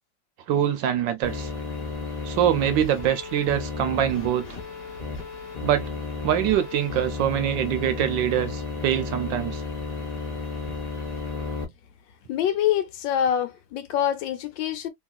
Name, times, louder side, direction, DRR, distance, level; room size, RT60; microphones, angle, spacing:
voice 1, 0.5-1.5 2.2-4.5 5.6-5.8 6.2-9.6, right 10 dB, 75° right, 1.2 m, -24 dB
sound 1, 1.2-11.6, left 4 dB, 35° left, 0.6 m, -33 dB
voice 2, 12.3-14.9, left 10 dB, 75° left, 1.3 m, -25 dB
3.0 x 2.9 x 2.3 m
omnidirectional pair, 2.1 m